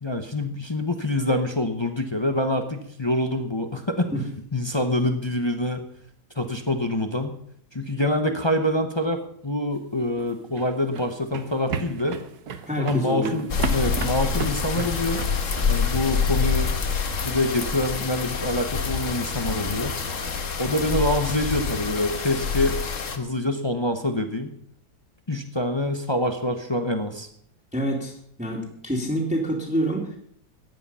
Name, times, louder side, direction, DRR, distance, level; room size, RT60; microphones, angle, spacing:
voice 1, 0.0-4.1 4.5-5.8 6.3-7.4 7.7-12.2 12.8-15.2 15.7-16.7 17.2-20.0 20.6-22.8 23.2-24.5 25.3-27.3, left 1 dB, 20° left, 6 dB, 0.8 m, -25 dB
sound 1, 10.0-15.7, right 6 dB, 65° right, 1.5 m, -33 dB
voice 2, 12.7-13.4 27.7-28.1 28.4-30.2, right 1 dB, 5° right, -1 dB, 2.4 m, -27 dB
sound 2, 13.5-23.2, left 5 dB, 50° left, 1.5 m, -26 dB
15.5 x 10.0 x 5.6 m, 0.66 s
omnidirectional pair, 1.9 m